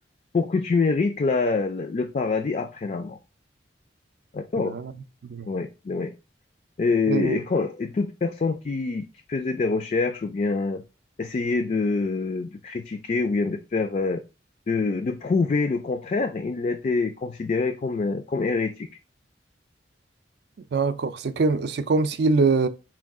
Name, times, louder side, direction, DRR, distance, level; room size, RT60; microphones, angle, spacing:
voice 1, 0.3-3.2 4.3-4.7 5.5-6.1 6.8-10.8 11.2-14.2 14.7-18.9, left 4 dB, 40° left, 0.3 m, -25 dB
voice 2, 4.6-4.9 5.2-5.5 7.1-7.4 20.7-22.7, right 4 dB, 60° right, 0.4 m, -23 dB
4.4 x 2.3 x 3.5 m
head